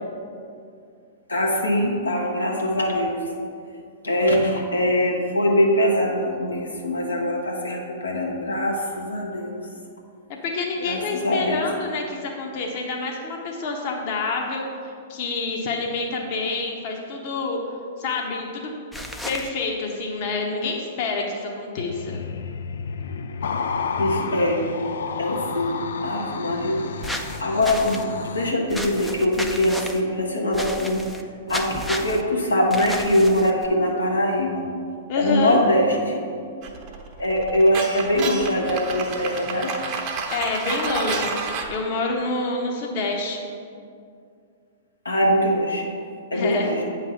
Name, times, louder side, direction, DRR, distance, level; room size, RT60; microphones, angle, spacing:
voice 1, 1.3-3.3 4.0-9.7 10.8-11.7 24.0-24.8 25.2-27.1 27.4-31.1 31.5-34.7 35.2-36.6 37.2-39.7 45.0-45.9 46.3-46.8, left 1 dB, 90° left, -2 dB, 1.1 m, -22 dB
voice 2, 10.3-17.6 18.0-18.7 19.3-22.2 35.1-35.6 40.3-41.4 41.7-43.4 46.3-46.7, left 3 dB, 45° left, 0 dB, 1.0 m, -27 dB
sound 1, 18.9-19.5 27.0-28.0 28.7-30.0 30.5-31.2 31.5-32.2 32.7-33.7, equal, 5° left, 0.5 m, -33 dB
sound 2, 21.9-28.5, left 5 dB, 65° left, 0.3 m, -31 dB
sound 3, 36.6-41.8, right 4 dB, 40° right, 0.9 m, -30 dB
8.2 x 3.2 x 5.7 m, 2.3 s
hypercardioid pair, 110°, 0 cm